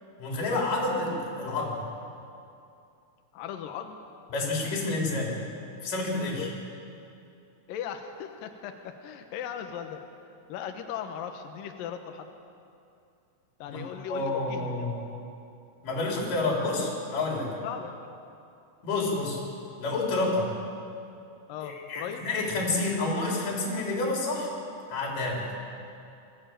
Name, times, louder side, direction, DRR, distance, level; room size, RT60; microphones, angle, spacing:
voice 1, 0.2-1.8 4.3-5.4 5.8-6.5 13.7-13.8 14.1-15.0 15.8-17.5 18.8-19.4 19.8-20.6 21.6-24.5 24.9-25.5, left 2 dB, 45° left, -2 dB, 4.9 m, -29 dB
voice 2, 3.3-4.0 6.2-6.5 7.7-10.0 10.5-12.3 13.6-14.9 17.6-18.1 21.5-22.3, left 8 dB, 90° left, 5 dB, 1.9 m, -38 dB
21.0 x 15.0 x 9.0 m, 2.6 s
omnidirectional pair, 5.7 m